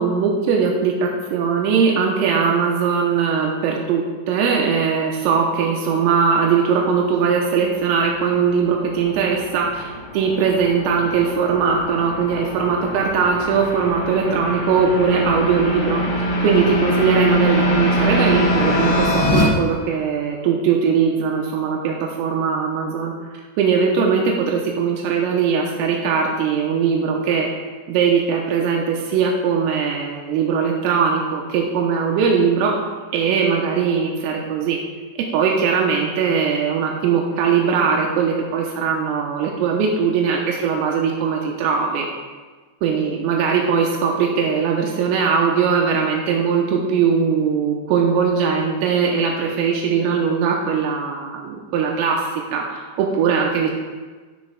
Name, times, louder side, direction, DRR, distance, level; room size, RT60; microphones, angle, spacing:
voice 1, 0.0-23.1 23.6-27.5 27.9-32.7 33.1-34.8 35.3-42.1 42.8-53.7, right 6 dB, 85° right, -1 dB, 3.4 m, -20 dB
sound 1, 7.9-19.4, equal, 50° left, 4.6 m, -23 dB
19.0 x 7.4 x 2.3 m, 1.4 s
omnidirectional pair, 5.9 m